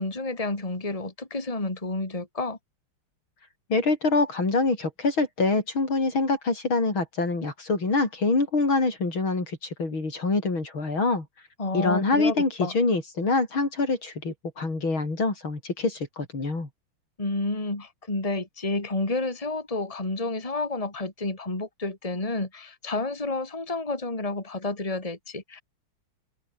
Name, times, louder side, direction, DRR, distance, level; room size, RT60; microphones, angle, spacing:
voice 1, 0.0-2.6 11.6-12.7 17.2-25.6, left 2 dB, 15° left, 3.2 m, -30 dB
voice 2, 3.7-11.3 11.7-12.5 12.7-16.7, left 3 dB, 70° left, 6.2 m, -25 dB
omnidirectional pair, 2.3 m